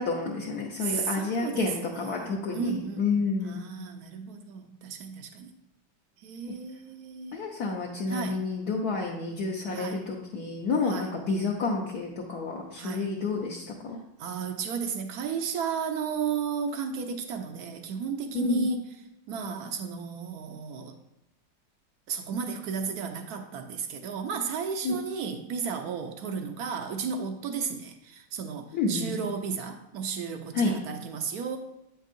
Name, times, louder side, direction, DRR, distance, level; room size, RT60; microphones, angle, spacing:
voice 1, 0.0-3.6 7.3-14.0 18.3-18.7 24.8-24.9 28.7-29.1 30.5-30.7, left 4 dB, 65° left, -2 dB, 1.2 m, -29 dB
voice 2, 0.8-5.5 6.2-7.4 8.1-8.4 9.7-10.0 10.8-11.1 12.8-13.1 14.2-18.9 19.3-21.0 22.1-31.6, right 6 dB, 70° right, 7 dB, 1.0 m, -34 dB
8.1 x 5.4 x 2.5 m, 0.89 s
omnidirectional pair, 2.0 m